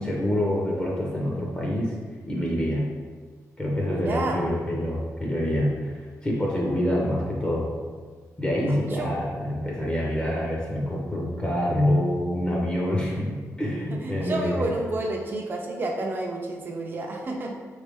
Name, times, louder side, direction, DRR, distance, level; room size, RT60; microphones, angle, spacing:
voice 1, 0.0-1.9 2.3-2.9 3.6-7.7 8.4-14.7, left 1 dB, 20° left, -3 dB, 0.6 m, -26 dB
voice 2, 3.9-4.4 8.9-9.1 13.9-17.5, right 2 dB, 35° right, 0 dB, 0.5 m, -30 dB
4.4 x 3.1 x 3.4 m, 1.5 s
wide cardioid pair, 175°, 6 cm